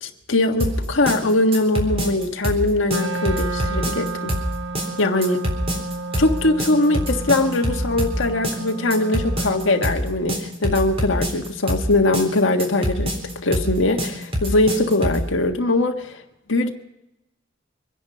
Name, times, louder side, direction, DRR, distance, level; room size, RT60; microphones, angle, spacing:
voice 1, 0.0-4.3 5.0-5.4 6.2-16.2 16.5-16.7, left 2 dB, 90° left, 3 dB, 1.6 m, -21 dB
sound 1, 0.6-15.3, equal, 30° right, 3.7 m, -25 dB
Wind instrument woodwind instrument, 2.9-10.0, right 3 dB, 85° right, 1.3 m, -32 dB
24.5 x 10.5 x 5.6 m, 0.88 s
head